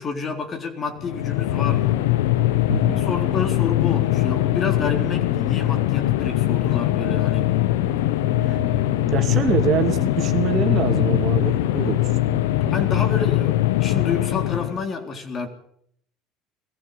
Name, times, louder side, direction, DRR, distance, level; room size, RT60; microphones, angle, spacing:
voice 1, 0.0-2.0 2.9-7.5 12.7-15.5, left 4 dB, 35° left, 5 dB, 4.0 m, -29 dB
sound 1, 1.0-14.8, left 15 dB, 90° left, 0.8 m, -21 dB
sound 2, 1.6-13.1, right 2 dB, 5° right, 2.5 m, -37 dB
voice 2, 2.7-3.0 8.4-12.1 12.6-12.8, right 9 dB, 50° right, 6 dB, 2.4 m, -26 dB
21.0 x 15.0 x 8.4 m, 0.69 s
supercardioid pair, 95°, 0 cm